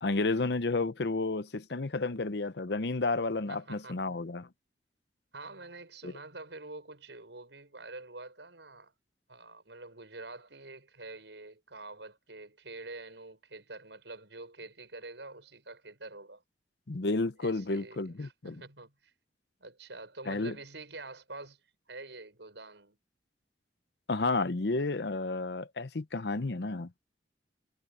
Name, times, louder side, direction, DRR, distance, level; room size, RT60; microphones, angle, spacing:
voice 1, 0.0-4.5 6.0-6.1 16.9-18.6 20.3-20.5 24.1-27.0, left 3 dB, 65° left, 0.8 m, -31 dB
voice 2, 3.5-4.0 5.3-8.9 9.3-16.4 17.4-19.1 19.6-21.6 21.9-23.0, right 2 dB, 80° right, 6.6 m, -46 dB
head